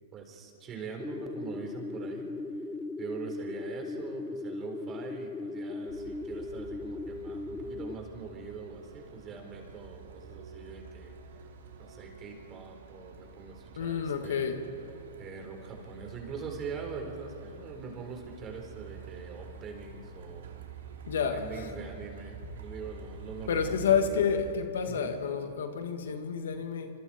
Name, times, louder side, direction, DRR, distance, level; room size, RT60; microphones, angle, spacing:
voice 1, 0.1-2.3 3.0-11.1 11.8-14.5 15.2-20.6 21.2-23.9 24.8-25.1, right 5 dB, 25° right, 2 dB, 4.3 m, -43 dB
sound 1, 1.0-8.0, left 2 dB, 10° left, 0.8 m, -38 dB
Truck, 5.9-24.6, right 6 dB, 80° right, 2.9 m, -48 dB
voice 2, 13.8-14.6 21.0-21.7 23.5-26.9, left 6 dB, 80° left, 6 dB, 2.0 m, -29 dB
26.5 x 25.0 x 4.5 m, 2.6 s
hypercardioid pair, 130°, 0 cm